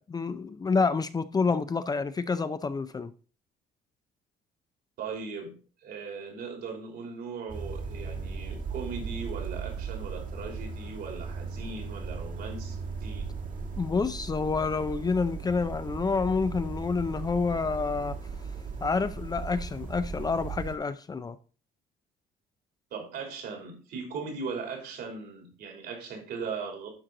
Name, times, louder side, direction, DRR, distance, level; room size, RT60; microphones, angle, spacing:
voice 1, 0.0-3.1 13.8-18.2 18.8-21.4, left 4 dB, 25° left, 0.5 m, -28 dB
voice 2, 5.0-5.5 5.8-13.3 22.9-26.9, right 5 dB, 70° right, 3.3 m, -38 dB
sound 1, 7.5-20.8, right 5 dB, 50° right, 1.7 m, -37 dB
11.0 x 4.4 x 3.9 m
cardioid pair, 110°, 17 cm